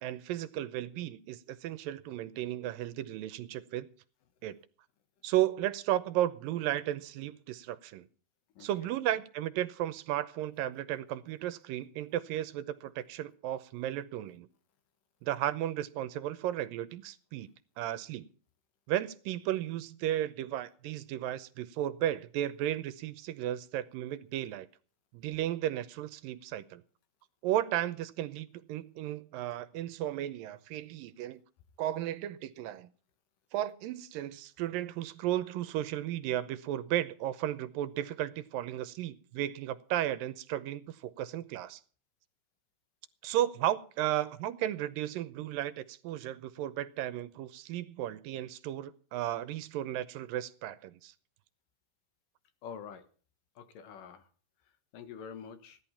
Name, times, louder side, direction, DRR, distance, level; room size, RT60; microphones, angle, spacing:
voice 1, 0.0-3.9 4.4-4.6 5.2-8.1 8.6-14.5 15.2-17.5 17.8-18.3 18.9-24.7 25.1-26.8 27.4-31.4 31.8-32.9 33.5-41.8 43.2-51.1, right 12 dB, 85° right, 14 dB, 2.5 m, -34 dB
voice 2, 8.6-8.9 52.6-53.1 53.6-54.3 54.9-55.8, left 7 dB, 75° left, 9 dB, 3.0 m, -46 dB
16.0 x 11.5 x 5.7 m, 0.41 s
omnidirectional pair, 4.0 m